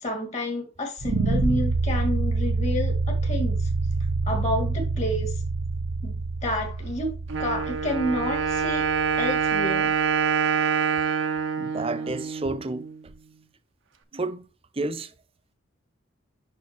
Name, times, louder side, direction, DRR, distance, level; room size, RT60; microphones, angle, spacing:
voice 1, 0.0-3.7 4.3-5.3 6.0-6.1 6.4-7.1 7.4-8.9 9.2-9.9, left 1 dB, 30° left, 2.3 m, -29 dB
sound 1, 1.0-10.0, right 3 dB, 85° right, 1.2 m, -27 dB
Wind instrument woodwind instrument, 7.3-13.0, right 6 dB, 60° right, 0.9 m, -26 dB
voice 2, 11.6-12.9 14.1-14.4 14.8-15.1, right 2 dB, 25° right, 0.6 m, -30 dB
11.0 x 3.8 x 3.0 m
head